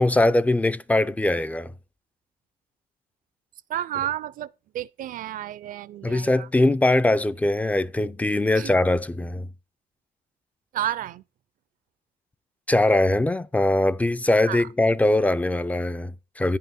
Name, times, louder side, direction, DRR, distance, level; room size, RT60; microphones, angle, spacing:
voice 1, 0.0-1.7 6.0-9.5 12.7-16.6, left 2 dB, 10° left, 0.4 m, -21 dB
voice 2, 3.7-6.5 8.5-8.7 10.7-11.2 14.5-14.7, right 11 dB, 55° right, 0.5 m, -31 dB
10.0 x 5.6 x 5.6 m
cardioid pair, 110°, 17 cm